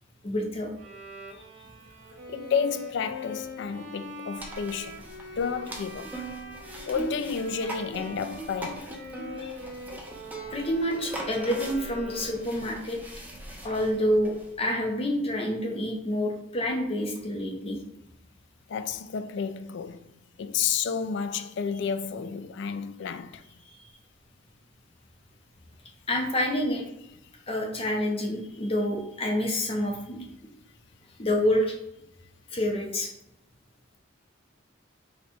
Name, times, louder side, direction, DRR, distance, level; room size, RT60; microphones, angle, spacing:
voice 1, 0.2-0.7 9.4-9.6 10.5-13.0 13.6-17.8 26.1-26.8 27.5-30.3 31.2-31.7 32.5-33.1, equal, 30° left, 0.7 m, -28 dB
Bowed string instrument, 0.8-12.6, left 1 dB, 65° right, 0.7 m, -43 dB
voice 2, 2.3-5.0 5.4-6.3 6.9-9.0 18.7-20.1 20.4-23.4, left 6 dB, 65° left, 0.4 m, -31 dB
sound 1, 4.4-14.5, right 2 dB, 10° right, 0.7 m, -40 dB
4.4 x 2.4 x 4.3 m
head